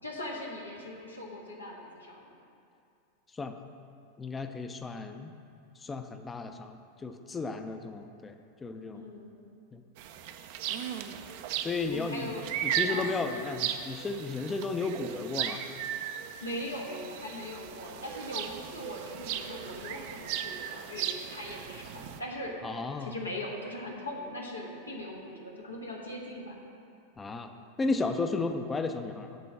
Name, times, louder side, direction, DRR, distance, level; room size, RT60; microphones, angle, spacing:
voice 1, 0.0-2.3 8.9-9.3 11.9-12.6 12.9-13.2 16.4-22.6 23.0-26.6, left 1 dB, 90° left, -2 dB, 1.3 m, -40 dB
voice 2, 4.2-5.3 5.8-8.3 8.6-9.0 9.7-9.8 11.6-12.3 12.6-15.6 22.6-23.1 27.2-27.5 27.8-29.4, left 3 dB, 20° left, 7 dB, 0.5 m, -34 dB
sound 1, 10.0-22.2, right 9 dB, 55° right, 0.5 m, -36 dB
9.5 x 3.8 x 7.2 m, 2.5 s
figure-of-eight pair, 90°, 0 cm